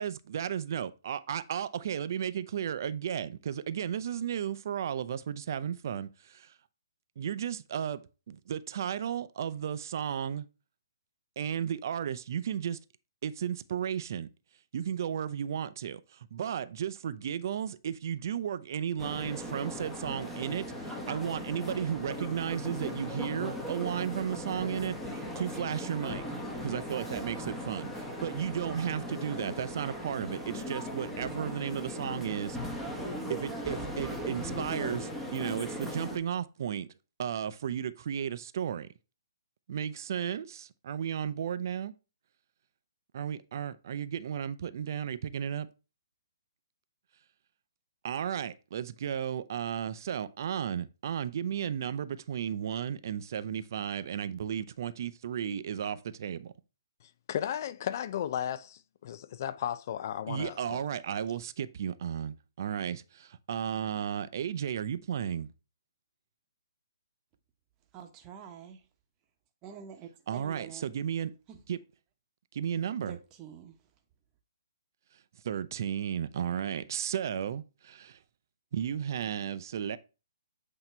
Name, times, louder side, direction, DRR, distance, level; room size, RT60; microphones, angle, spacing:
voice 1, 0.0-6.5 7.2-8.0 8.3-10.5 11.4-12.8 13.2-14.3 14.7-26.2 26.6-32.9 33.3-36.9 37.2-38.9 39.7-41.9 43.1-45.7 48.0-56.5 60.3-65.5 70.3-71.3 71.7-71.8 72.5-73.2 75.4-78.2 78.7-80.0, right 8 dB, 55° right, 0.5 m, -34 dB
sound 1, 19.0-36.2, equal, 5° left, 1.0 m, -38 dB
voice 2, 57.3-60.8, left 10 dB, 45° left, 0.4 m, -35 dB
voice 3, 67.9-68.8 69.6-70.8 71.5-71.6 73.1-73.8, right 8 dB, 25° right, 1.0 m, -47 dB
8.0 x 2.9 x 4.4 m
hypercardioid pair, 145°, 2 cm